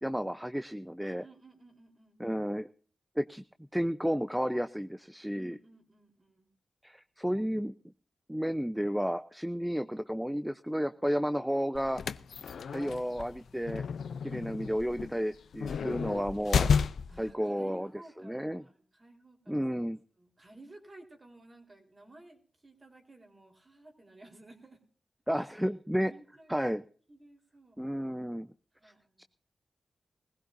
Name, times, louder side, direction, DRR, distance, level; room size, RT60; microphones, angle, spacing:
voice 1, 0.0-1.2 2.2-2.7 3.2-3.4 3.7-5.6 6.8-7.7 8.3-12.0 12.7-13.8 14.2-16.7 17.2-17.9 18.2-18.6 19.5-20.0 25.3-26.1 26.5-26.8 27.8-28.5 28.8-28.9 29.2-29.3, equal, 5° right, 11 dB, 0.7 m, -32 dB
voice 2, 1.0-2.2 5.3-6.5 10.7-11.2 17.1-19.6 20.2-24.8 25.4-26.5 27.1-27.8 28.7-29.2, right 2 dB, 40° right, 2 dB, 4.1 m, -56 dB
sound 1, 11.7-17.3, left 6 dB, 85° left, 0.5 m, -32 dB
21.0 x 16.0 x 2.7 m, 0.42 s
cardioid pair, 55°, 0 cm